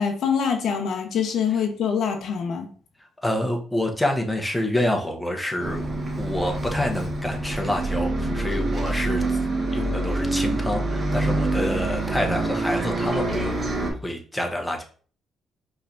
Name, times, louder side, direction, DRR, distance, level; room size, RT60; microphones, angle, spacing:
voice 1, 0.0-2.7, left 7 dB, 70° left, 5 dB, 0.8 m, -24 dB
voice 2, 3.2-9.4 9.7-13.8 14.0-14.8, left 1 dB, 5° left, 1 dB, 0.9 m, -27 dB
Bus, 5.6-13.9, right 2 dB, 40° right, 1.7 m, -26 dB
5.2 x 3.3 x 2.7 m, 0.42 s
cardioid pair, 90°, 0 cm